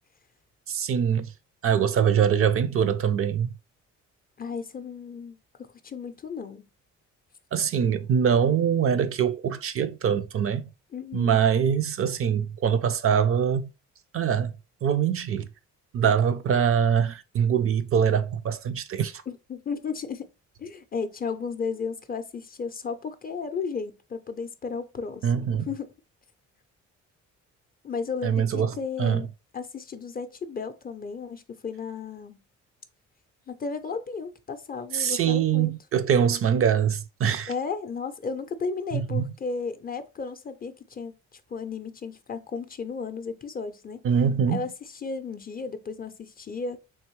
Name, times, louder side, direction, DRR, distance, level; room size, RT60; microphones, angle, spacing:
voice 1, 0.7-1.3 1.6-3.5 7.5-10.7 11.1-13.7 14.1-14.5 14.8-15.5 15.9-19.2 25.2-25.7 28.2-29.2 34.9-37.5 38.9-39.3 44.0-44.6, right 8 dB, 50° right, 0.4 m, -23 dB
voice 2, 4.4-6.6 10.9-11.4 19.3-20.3 20.6-25.8 27.8-29.3 29.5-32.4 33.5-35.7 37.5-44.0 44.5-46.8, left 5 dB, 30° left, 0.4 m, -34 dB
3.5 x 3.0 x 3.0 m
cardioid pair, 90°, 30 cm